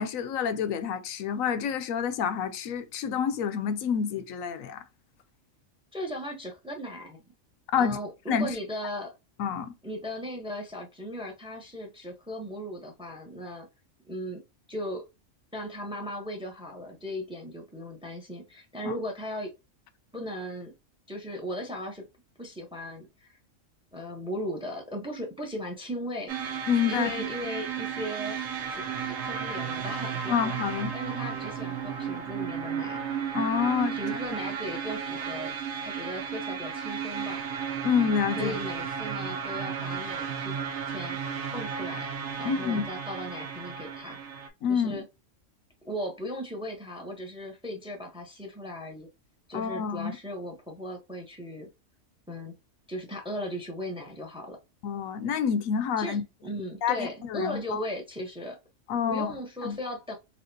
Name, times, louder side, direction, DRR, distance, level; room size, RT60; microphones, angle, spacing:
voice 1, 0.0-4.8 7.7-8.0 8.3-8.5 9.4-9.7 18.8-18.9 26.7-27.1 30.3-30.9 33.3-34.0 37.8-38.6 42.4-42.8 44.6-45.0 49.5-50.2 54.8-56.2 56.8-57.8 58.9-59.3 59.6-59.8, left 7 dB, 80° left, 1.0 m, -28 dB
voice 2, 5.9-7.2 7.8-9.1 9.8-13.7 14.1-14.4 14.7-15.1 15.5-19.5 20.1-20.7 21.1-22.0 22.4-23.4 23.9-26.3 26.9-28.4 28.7-30.5 30.9-33.0 33.9-35.5 35.8-37.4 38.4-40.6 40.9-42.1 42.4-44.2 44.7-45.0 45.8-49.1 49.5-51.7 52.3-52.5 52.9-54.6 56.0-58.6 59.1-60.1, equal, 5° right, 0.7 m, -37 dB
sound 1, 26.3-44.5, right 7 dB, 80° right, 1.2 m, -34 dB
4.3 x 2.4 x 2.7 m
omnidirectional pair, 1.4 m